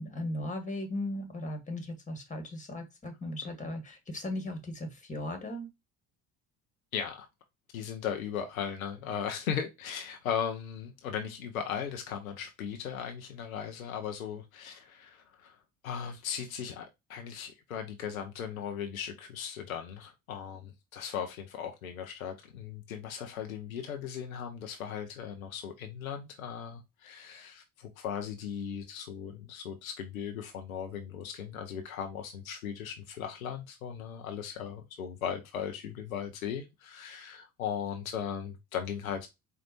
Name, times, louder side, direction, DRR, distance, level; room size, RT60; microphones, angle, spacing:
voice 1, 0.0-5.7, left 1 dB, 20° left, 1.8 m, -37 dB
voice 2, 6.9-7.3 7.7-15.6 15.8-39.3, left 8 dB, 80° left, 0.8 m, -37 dB
4.5 x 2.5 x 4.1 m
figure-of-eight pair, 55°, 41 cm